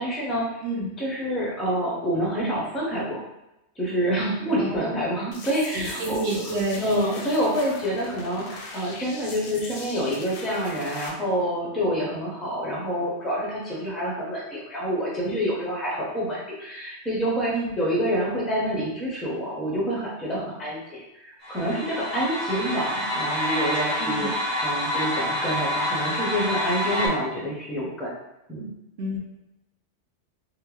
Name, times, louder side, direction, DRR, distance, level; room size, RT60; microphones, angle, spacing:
voice 1, 0.0-0.5 1.0-3.2 3.8-24.3 24.6-28.1 28.5-28.7, equal, ahead, -5 dB, 0.5 m, -27 dB
voice 2, 0.6-0.9 4.6-5.0 5.7-6.8 17.5-17.7 24.0-24.3 29.0-29.2, right 2 dB, 65° right, -2 dB, 0.8 m, -29 dB
sound 1, 5.3-11.1, left 3 dB, 60° left, 0.7 m, -40 dB
sound 2, 21.4-27.1, left 1 dB, 35° right, 1.5 m, -27 dB
3.7 x 2.2 x 3.0 m, 0.91 s
omnidirectional pair, 1.2 m